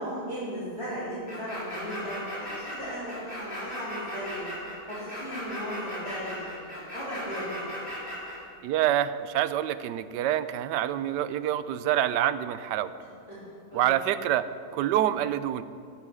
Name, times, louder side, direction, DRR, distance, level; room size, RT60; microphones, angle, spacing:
voice 1, 0.0-4.4 4.9-7.7 13.3-13.9, equal, 15° right, -12 dB, 3.5 m, -37 dB
sound 1, 1.3-8.4, equal, 30° left, 4.4 m, -37 dB
voice 2, 8.6-12.9 13.7-14.5 14.7-15.6, right 11 dB, 85° right, 14 dB, 1.2 m, -26 dB
13.5 x 8.7 x 6.2 m, 2.2 s
omnidirectional pair, 1.8 m